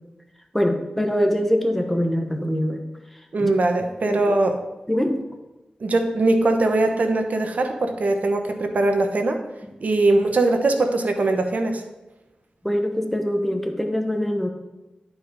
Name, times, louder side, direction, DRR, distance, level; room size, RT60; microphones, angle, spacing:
voice 1, 0.5-2.8 3.4-3.5 4.0-4.2 4.9-5.2 12.6-14.5, equal, 5° left, 4 dB, 1.2 m, -23 dB
voice 2, 3.3-4.6 5.8-9.4 9.8-11.8, right 2 dB, 65° right, 5 dB, 1.0 m, -21 dB
11.0 x 4.9 x 5.2 m, 1.0 s
cardioid pair, 65°, 3 cm